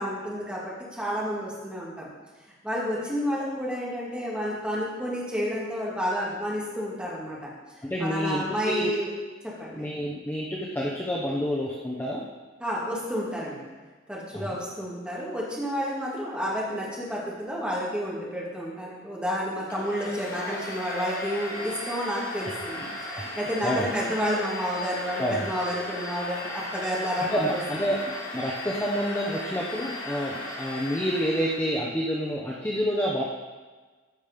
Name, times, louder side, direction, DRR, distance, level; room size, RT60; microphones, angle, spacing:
voice 1, 0.0-2.1 2.6-7.5 8.0-9.1 9.4-9.9 12.6-13.6 14.1-22.8 23.1-27.8, equal, 5° right, -6 dB, 2.4 m, -30 dB
voice 2, 7.8-8.9 9.7-12.2 14.3-14.5 22.8-22.9 23.4-23.9 25.2-25.5 27.3-28.0 28.3-33.2, equal, 10° left, -4 dB, 0.9 m, -28 dB
Domestic sounds home sounds, 19.7-31.8, left 1 dB, 85° left, 3.6 m, -37 dB
14.0 x 5.3 x 5.2 m, 1.3 s
head